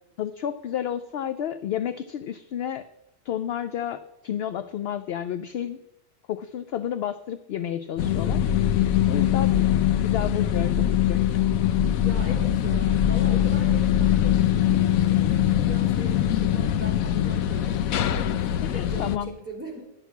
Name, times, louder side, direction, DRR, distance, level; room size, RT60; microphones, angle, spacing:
voice 1, 0.2-2.9 3.3-5.8 6.3-8.8 9.1-11.2 18.6-19.3, left 10 dB, 65° left, 11 dB, 0.6 m, -31 dB
sound 1, 8.0-19.2, left 11 dB, 90° left, 1.0 m, -22 dB
voice 2, 12.0-14.4 14.7-19.8, right 1 dB, 10° right, -4 dB, 3.2 m, -40 dB
11.0 x 6.2 x 8.2 m, 0.89 s
omnidirectional pair, 1.4 m